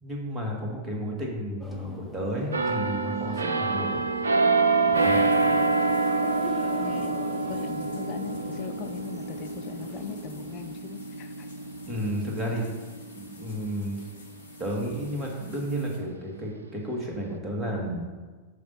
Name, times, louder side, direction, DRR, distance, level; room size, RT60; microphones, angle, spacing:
voice 1, 0.0-4.0 4.9-5.2 11.8-12.7 13.2-14.1 14.6-18.1, equal, 20° right, -1 dB, 1.8 m, -32 dB
sound 1, 1.6-10.6, left 1 dB, 5° left, 0.9 m, -43 dB
sound 2, 2.5-14.1 14.5-14.7, right 3 dB, 75° right, 0.4 m, -27 dB
sound 3, 4.9-16.0, left 3 dB, 70° left, 1.1 m, -53 dB
voice 2, 5.5-5.9 6.8-7.2 7.5-11.5, left 10 dB, 40° left, 9 dB, 0.3 m, -40 dB
5.8 x 5.1 x 5.5 m, 1.4 s
figure-of-eight pair, 90°, 0 cm